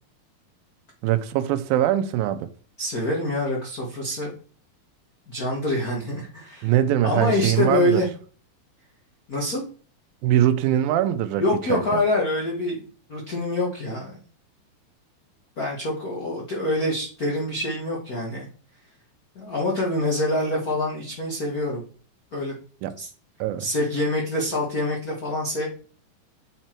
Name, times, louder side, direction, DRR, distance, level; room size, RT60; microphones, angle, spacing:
voice 1, 1.0-2.5 6.6-8.0 10.2-11.4 11.7-11.8 22.8-22.9 23.4-23.7, right 12 dB, 85° right, 2.4 m, -22 dB
voice 2, 2.8-4.3 5.3-6.7 7.0-8.1 9.3-9.6 11.4-12.8 13.1-14.2 15.6-18.5 19.3-21.8 22.3-22.5 23.0-23.1 23.6-25.7, left 1 dB, 60° left, 0.9 m, -25 dB
7.7 x 4.5 x 4.4 m
omnidirectional pair, 4.1 m